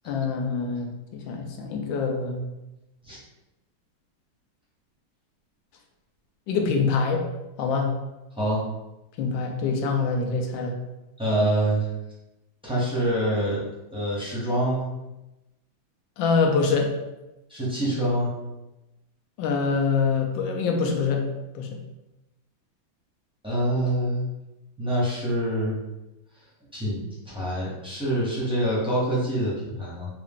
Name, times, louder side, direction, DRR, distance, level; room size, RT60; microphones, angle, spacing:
voice 1, 0.1-2.4 6.5-7.2 7.6-7.9 9.2-10.7 16.2-16.9 19.4-21.2 21.5-21.7, left 4 dB, 75° left, 2 dB, 1.3 m, -25 dB
voice 2, 11.2-11.9 12.6-13.6 13.9-14.9 17.5-18.3 23.4-24.3 24.8-25.8 26.7-30.1, right 1 dB, 5° right, -8 dB, 0.6 m, -25 dB
3.6 x 2.4 x 3.6 m, 0.98 s
omnidirectional pair, 2.2 m